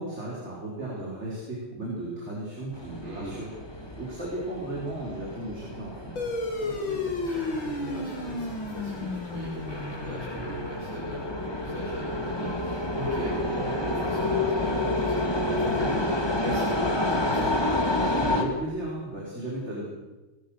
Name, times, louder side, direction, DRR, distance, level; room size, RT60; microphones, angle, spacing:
voice 1, 0.0-3.5 4.0-6.3 18.0-19.9, right 1 dB, 30° right, -4 dB, 5.3 m, -35 dB
sound 1, 2.7-18.4, left 2 dB, 10° left, 2.5 m, -30 dB
voice 2, 3.0-3.4 6.6-17.6, right 1 dB, 75° right, -5 dB, 6.0 m, -38 dB
sound 2, 6.2-11.0, left 3 dB, 65° left, 3.6 m, -33 dB
23.0 x 20.0 x 6.7 m, 1.1 s
omnidirectional pair, 2.3 m